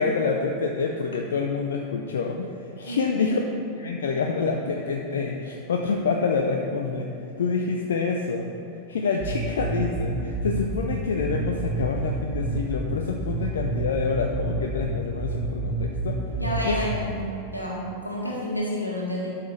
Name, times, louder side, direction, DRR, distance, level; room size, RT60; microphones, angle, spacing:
voice 1, 0.0-2.5 2.8-3.4 3.8-7.1 7.4-8.5 8.9-16.2 16.6-16.8, left 4 dB, 65° left, 2 dB, 0.5 m, -27 dB
sound 1, 9.2-17.2, right 3 dB, 25° right, 1.4 m, -29 dB
voice 2, 16.3-17.1 17.5-19.3, equal, 85° left, -4 dB, 1.7 m, -29 dB
12.0 x 5.8 x 3.3 m, 2.8 s
figure-of-eight pair, 90°, 0 cm